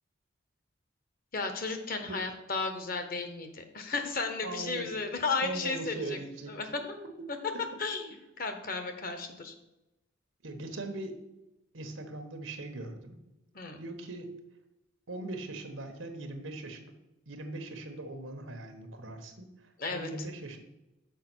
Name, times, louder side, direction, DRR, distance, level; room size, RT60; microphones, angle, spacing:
voice 1, 1.3-6.2 6.5-7.0 7.3-7.4 7.8-9.5 13.5-13.8 19.8-20.1, left 4 dB, 50° left, 7 dB, 1.0 m, -34 dB
voice 2, 4.4-4.9 5.4-6.6 7.0-7.1 7.5-7.6 10.4-11.2 11.7-13.2 13.8-14.3 15.1-16.9 17.3-20.6, right 2 dB, 90° right, 6 dB, 1.2 m, -40 dB
6.6 x 4.8 x 6.2 m, 0.94 s
head